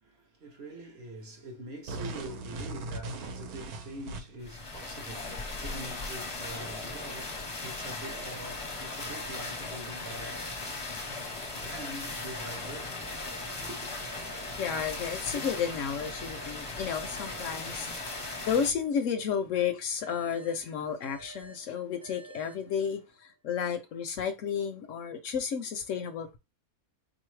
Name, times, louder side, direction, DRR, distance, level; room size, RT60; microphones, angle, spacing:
voice 1, 0.0-11.2 11.5-13.9, right 1 dB, 50° right, 0.9 m, -44 dB
sound 1, 1.9-4.5, right 2 dB, 80° right, 1.1 m, -39 dB
sound 2, 4.4-18.7, left 3 dB, 30° left, 0.6 m, -38 dB
sound 3, 8.0-11.3 12.0-15.3 16.0-19.3 20.0-23.3, right 5 dB, 25° right, 0.4 m, -52 dB
voice 2, 14.6-26.4, left 7 dB, 70° left, 0.8 m, -32 dB
3.9 x 2.7 x 3.1 m
omnidirectional pair, 1.6 m